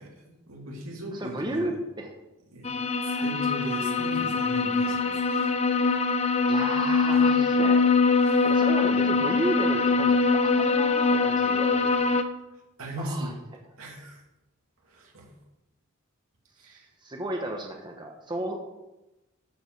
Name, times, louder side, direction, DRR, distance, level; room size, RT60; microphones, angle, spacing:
voice 1, 0.0-1.7 2.5-6.0 8.2-8.5 12.5-13.3 13.8-14.2 14.8-15.3 16.6-16.9, equal, 90° right, -1 dB, 2.8 m, -39 dB
voice 2, 1.1-2.1 6.5-7.8 8.4-12.1 13.0-13.3 16.7-18.7, right 1 dB, 20° right, 2 dB, 1.2 m, -33 dB
sound 1, 2.6-12.2, left 4 dB, 30° left, 0.6 m, -23 dB
13.0 x 5.2 x 6.3 m, 0.97 s
head